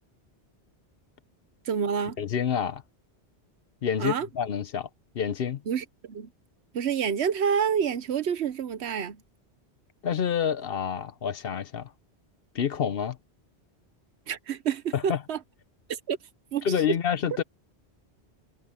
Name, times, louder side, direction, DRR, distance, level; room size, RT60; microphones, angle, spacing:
voice 1, 1.7-2.2 4.0-4.3 5.7-6.3 6.7-9.2 14.3-15.4 16.1-16.2 16.5-17.0, right 7 dB, 70° right, 1.1 m, -28 dB
voice 2, 2.2-2.8 3.8-4.9 5.1-5.6 10.0-11.9 12.5-13.2 14.9-15.2 16.6-17.4, left 8 dB, 60° left, 0.9 m, -28 dB
omnidirectional pair, 1.1 m